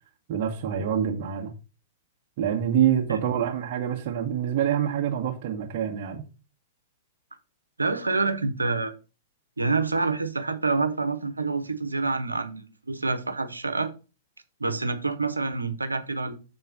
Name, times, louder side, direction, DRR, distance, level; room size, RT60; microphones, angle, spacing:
voice 1, 0.3-1.5 2.4-6.2, right 9 dB, 45° right, 1.3 m, -26 dB
voice 2, 7.8-8.9 9.6-13.9 14.6-16.3, right 3 dB, 85° right, 1.0 m, -27 dB
7.1 x 4.5 x 5.4 m
figure-of-eight pair, 105°, 0 cm